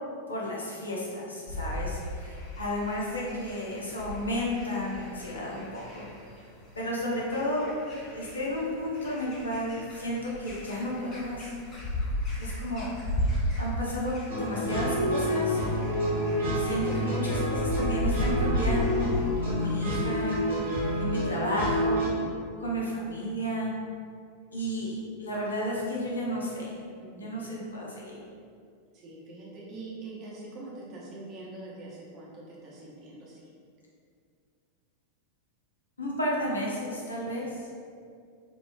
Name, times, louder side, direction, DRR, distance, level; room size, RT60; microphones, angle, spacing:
voice 1, 0.3-6.1 6.8-7.7 8.1-11.5 12.4-12.9 13.6-15.6 16.5-19.2 19.5-20.4 21.0-22.2 22.6-23.7 24.5-26.7 27.1-28.2 36.0-37.6, equal, 75° left, -4 dB, 0.7 m, -32 dB
sound 1, 1.5-21.0, equal, 30° left, 0.6 m, -35 dB
sound 2, 14.3-22.1, equal, 65° right, 1.0 m, -28 dB
voice 2, 27.0-27.4 28.9-33.5, right 2 dB, 35° right, -5 dB, 0.9 m, -44 dB
4.3 x 2.3 x 2.6 m, 2.3 s
figure-of-eight pair, 90°, 0 cm